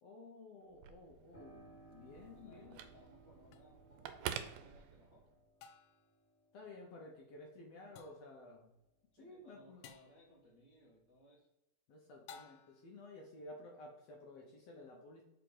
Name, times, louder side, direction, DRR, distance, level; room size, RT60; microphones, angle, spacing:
voice 1, 0.0-2.8 6.5-8.7 9.2-9.8 11.9-15.2, left 2 dB, 70° left, 0 dB, 1.6 m, -54 dB
Telephone, 0.7-5.4, right 9 dB, 85° right, 2.1 m, -48 dB
Piano, 1.3-9.8 10.2-11.2, right 1 dB, 30° left, 1.5 m, -65 dB
voice 2, 2.3-5.4 9.2-11.5, equal, 60° right, -5 dB, 0.8 m, -64 dB
sound 1, 3.5-3.6 5.6-6.1 8.0-8.3 9.8-10.2 12.3-12.9, left 7 dB, 85° left, 2.2 m, -56 dB
5.1 x 4.5 x 5.3 m, 0.90 s
omnidirectional pair, 3.8 m